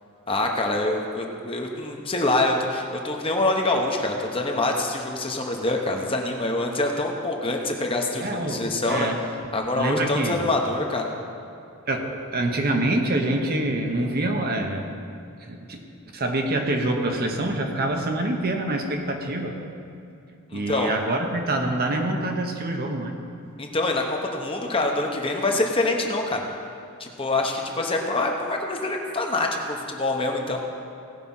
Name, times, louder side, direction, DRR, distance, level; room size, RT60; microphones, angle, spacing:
voice 1, 0.3-9.1 9.5-11.1 20.5-20.9 23.6-26.4 27.0-30.6, left 2 dB, 25° left, 1 dB, 1.0 m, -25 dB
voice 2, 8.2-9.2 9.7-10.4 11.9-14.9 15.4-15.8 16.1-19.7 20.5-23.2, right 1 dB, 45° right, 3 dB, 1.0 m, -26 dB
17.0 x 5.8 x 5.5 m, 2.6 s
head